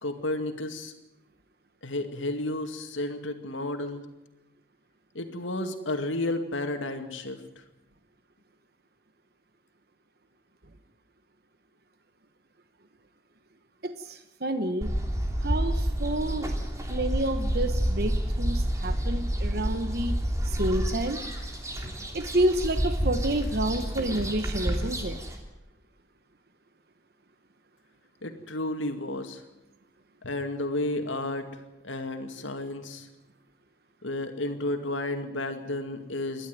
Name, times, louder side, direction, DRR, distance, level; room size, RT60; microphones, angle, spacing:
voice 1, 0.0-0.9 1.8-4.1 5.1-7.6 28.2-29.4 30.2-33.1 34.0-36.5, left 2 dB, 85° left, 6 dB, 2.3 m, -32 dB
voice 2, 13.8-14.9 15.4-16.5 16.9-20.2 20.4-21.2 22.1-25.2, right 1 dB, 55° right, 9 dB, 1.2 m, -29 dB
sound 1, 14.8-25.4, equal, 15° right, 3.1 m, -29 dB
28.0 x 11.5 x 9.5 m, 0.98 s
head